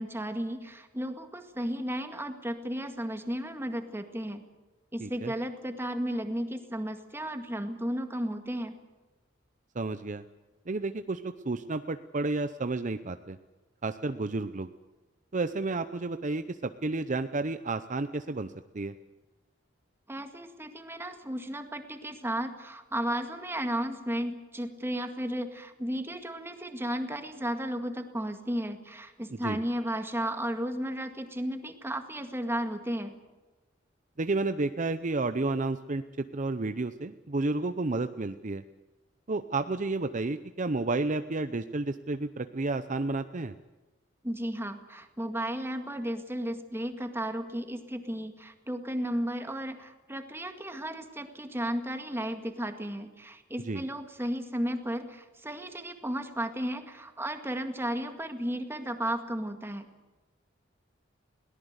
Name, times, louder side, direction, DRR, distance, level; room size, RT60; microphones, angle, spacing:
voice 1, 0.0-4.4 4.9-8.7 20.1-33.1 44.2-59.9, equal, 15° right, 6 dB, 2.0 m, -34 dB
voice 2, 5.0-5.3 9.7-10.2 10.7-13.4 13.8-14.7 15.3-18.9 29.3-29.6 34.2-36.0 36.3-38.6 39.3-43.5 53.6-53.8, right 3 dB, 40° right, 10 dB, 0.7 m, -31 dB
22.0 x 18.0 x 8.1 m, 1.2 s
head